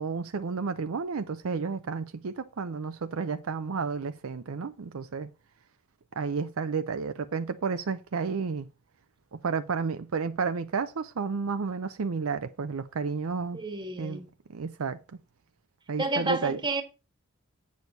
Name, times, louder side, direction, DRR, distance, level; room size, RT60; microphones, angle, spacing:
voice 1, 0.0-5.3 6.2-8.7 9.3-13.6 14.0-14.2 14.5-15.0 15.9-16.6, right 5 dB, 70° right, 0.5 m, -31 dB
voice 2, 13.5-14.3 16.0-16.8, right 2 dB, 20° right, 1.4 m, -30 dB
8.3 x 6.4 x 4.0 m
head